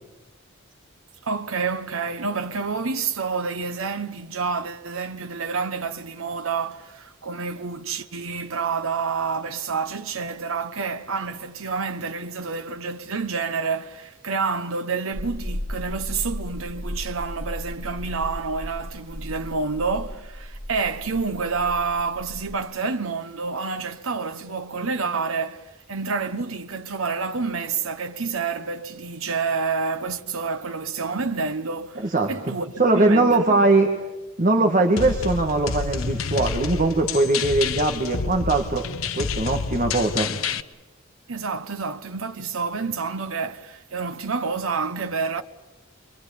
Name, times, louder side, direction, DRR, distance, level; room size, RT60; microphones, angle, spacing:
voice 1, 1.2-33.7 41.3-45.4, right 4 dB, 90° right, 1.0 m, -28 dB
sound 1, 15.1-22.6, equal, 10° right, 5.0 m, -35 dB
voice 2, 32.8-33.9 34.4-38.8 39.1-40.3, right 2 dB, 40° right, 1.9 m, -20 dB
sound 2, 35.0-40.6, left 5 dB, 85° left, 0.9 m, -29 dB
26.0 x 23.0 x 8.4 m
head